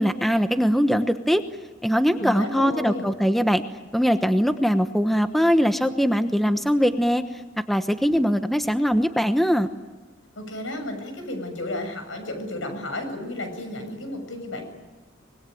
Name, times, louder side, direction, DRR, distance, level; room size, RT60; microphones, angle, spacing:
voice 1, 0.0-1.4 1.8-3.6 3.9-7.2 7.7-9.7, equal, ahead, 9 dB, 1.1 m, -21 dB
voice 2, 2.2-3.1 10.4-14.6, left 1 dB, 80° left, 6 dB, 7.2 m, -32 dB
25.5 x 22.0 x 9.2 m, 1.2 s
head